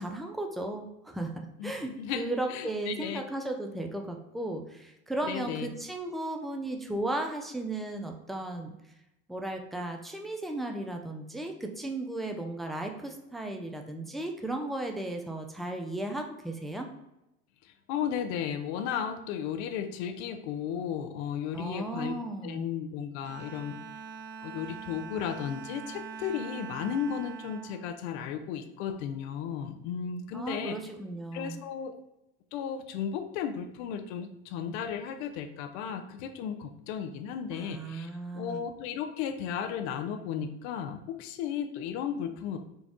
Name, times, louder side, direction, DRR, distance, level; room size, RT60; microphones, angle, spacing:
voice 1, 0.0-8.7 9.3-16.9 21.5-22.7 30.3-31.6 37.5-38.6, right 2 dB, ahead, 3 dB, 0.4 m, -35 dB
voice 2, 2.0-3.2 5.2-5.7 17.6-22.1 22.4-23.8 24.4-30.8 31.3-31.9 32.5-38.1 38.3-42.6, left 8 dB, 70° left, 6 dB, 0.6 m, -34 dB
Bowed string instrument, 23.2-28.8, right 5 dB, 35° right, 0.7 m, -43 dB
4.0 x 2.3 x 3.6 m, 0.90 s
hypercardioid pair, 85°, 35 cm